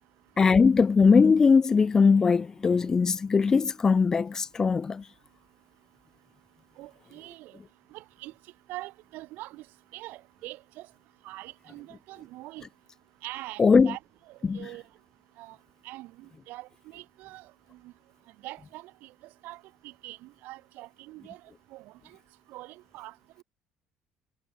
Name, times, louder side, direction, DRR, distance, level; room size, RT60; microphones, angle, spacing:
voice 1, 0.4-5.0 13.6-13.9 14.4-14.7, left 5 dB, 15° left, 0.5 m, -20 dB
voice 2, 6.8-7.6 7.9-8.3 8.7-9.6 9.9-10.9 11.2-12.7 13.2-14.0 14.3-14.8 15.4-15.6 15.8-17.9 18.4-19.1 19.4-21.4 21.7-22.2 22.5-23.1, right 18 dB, 65° right, 2.7 m, -43 dB
cardioid pair, 180°, 3 cm